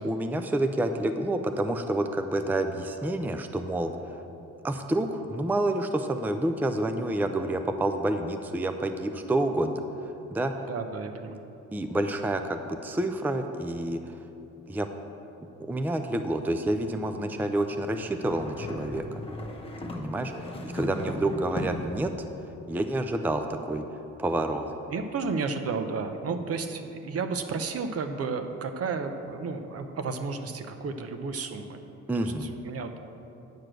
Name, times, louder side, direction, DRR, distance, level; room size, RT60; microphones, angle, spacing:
voice 1, 0.0-4.2 4.6-9.7 10.0-10.5 11.7-14.2 14.7-14.9 15.6-19.2 19.9-22.1 22.7-23.8 24.2-24.7 32.1-32.5, right 1 dB, 5° right, 7 dB, 0.5 m, -28 dB
voice 2, 10.7-11.4 21.0-21.1 21.5-21.6 24.9-31.8 32.1-33.0, right 4 dB, 50° right, 7 dB, 0.8 m, -32 dB
sound 1, 18.0-22.0, left 1 dB, 20° left, 1.1 m, -37 dB
9.4 x 4.9 x 7.6 m, 2.8 s
cardioid pair, 90°, 30 cm